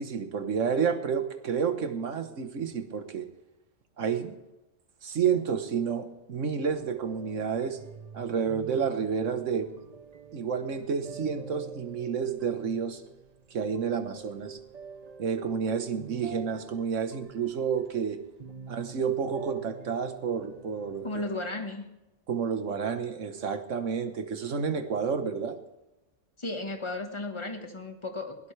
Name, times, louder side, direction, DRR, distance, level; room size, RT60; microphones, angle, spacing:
voice 1, 0.0-3.3 4.0-4.4 5.0-7.8 8.1-9.7 10.3-13.0 13.5-14.6 15.2-18.2 18.7-21.3 22.3-25.6, right 6 dB, 85° right, 9 dB, 1.5 m, -30 dB
sound 1, 6.7-21.4, right 6 dB, 40° right, 0.7 m, -47 dB
voice 2, 21.0-21.9 26.4-28.5, left 2 dB, 25° left, 5 dB, 1.6 m, -35 dB
21.5 x 17.5 x 3.3 m, 1.0 s
omnidirectional pair, 1.3 m